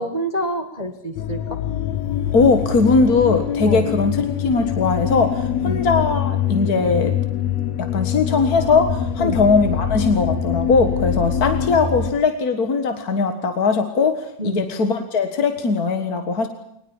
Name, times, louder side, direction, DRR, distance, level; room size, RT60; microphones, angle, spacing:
voice 1, 0.0-1.6 3.7-3.9 5.6-5.8 9.2-9.4 14.4-14.7, right 1 dB, 35° right, 8 dB, 0.6 m, -27 dB
sound 1, 1.2-12.1, left 9 dB, 65° left, 2.2 m, -24 dB
voice 2, 2.3-7.1 7.8-16.5, left 4 dB, 40° left, 8 dB, 1.5 m, -19 dB
22.0 x 20.0 x 7.2 m, 0.75 s
omnidirectional pair, 3.4 m